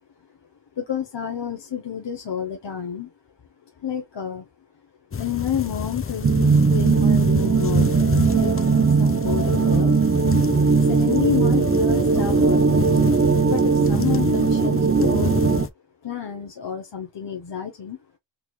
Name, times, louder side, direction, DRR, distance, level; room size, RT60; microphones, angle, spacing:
voice 1, 0.8-3.1 3.8-4.4 5.1-9.9 10.8-12.9 13.5-15.3 16.0-18.0, left 8 dB, 65° left, 0.8 m, -30 dB
sound 1, 5.1-15.7, left 6 dB, 30° left, 0.4 m, -29 dB
sound 2, 6.2-15.7, right 5 dB, 30° right, 0.4 m, -19 dB
3.8 x 3.0 x 2.3 m
wide cardioid pair, 65°, 46 cm